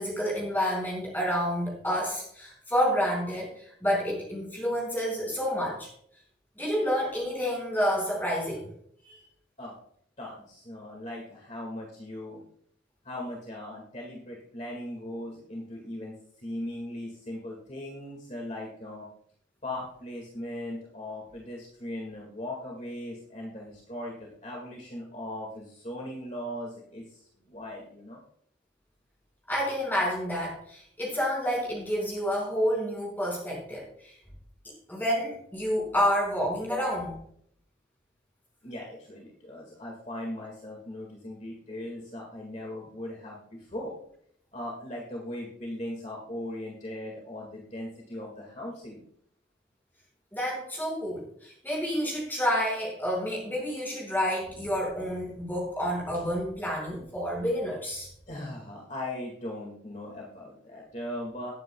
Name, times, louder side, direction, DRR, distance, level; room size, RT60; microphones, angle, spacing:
voice 1, 0.0-5.9 6.6-8.7 9.0-9.1 29.5-34.1 34.9-37.2 50.3-58.1, equal, 10° left, -3 dB, 5.1 m, -29 dB
voice 2, 10.2-12.4 13.0-19.1 19.6-28.2 38.6-43.9 44.5-49.0 58.3-61.5, left 1 dB, 40° left, -1 dB, 1.9 m, -39 dB
19.5 x 9.1 x 2.3 m, 0.67 s
head